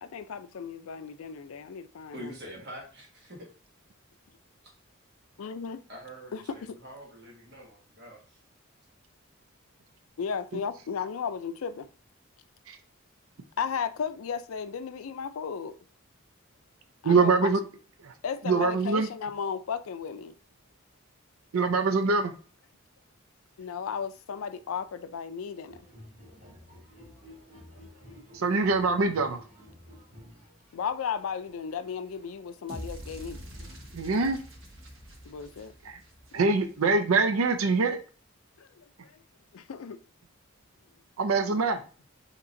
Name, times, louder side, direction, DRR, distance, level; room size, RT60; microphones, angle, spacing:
voice 1, 0.0-2.3 5.4-5.8 6.3-6.8 10.2-11.9 13.6-15.8 17.0-17.5 18.2-20.3 23.6-25.8 27.7-27.8 28.1-28.2 30.7-33.4 35.3-35.7 38.6-39.2 39.5-40.0 41.5-41.6, left 6 dB, 80° left, 0.4 m, -35 dB
voice 2, 2.1-3.5 5.9-8.2, equal, 50° right, 1.5 m, -45 dB
voice 3, 17.0-17.6 18.0-18.1 18.5-19.1 21.5-22.3 28.3-29.4 33.9-34.4 35.9-36.0 36.3-38.0 41.2-41.8, right 4 dB, 85° right, 0.5 m, -24 dB
sound 1, 25.7-33.8, left 1 dB, 35° right, 2.2 m, -52 dB
sound 2, 32.7-36.9, equal, 65° right, 1.3 m, -45 dB
5.6 x 2.9 x 2.6 m
head